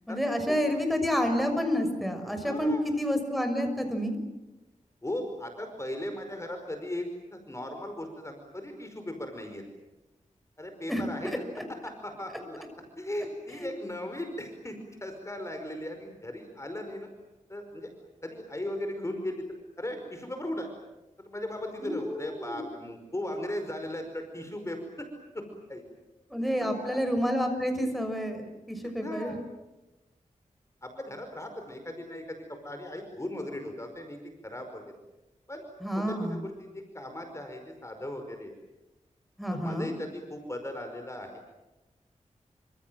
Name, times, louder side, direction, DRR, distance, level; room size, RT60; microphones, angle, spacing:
voice 1, 0.1-4.1 10.9-11.6 13.5-13.7 21.8-22.6 26.3-29.3 35.8-36.4 39.4-39.9, equal, ahead, 5 dB, 6.4 m, -29 dB
voice 2, 2.4-2.8 5.0-7.1 7.3-9.6 10.6-12.6 13.0-17.1 17.5-17.9 18.2-20.7 21.3-25.1 25.3-25.4 25.7-25.8 26.5-27.0 29.0-29.4 30.8-32.4 32.6-34.2 34.4-34.8 35.5-35.6 35.9-38.5 39.6-41.3, left 1 dB, 20° left, 5 dB, 5.1 m, -37 dB
28.5 x 26.5 x 7.7 m, 1.0 s
wide cardioid pair, 75°, 13 cm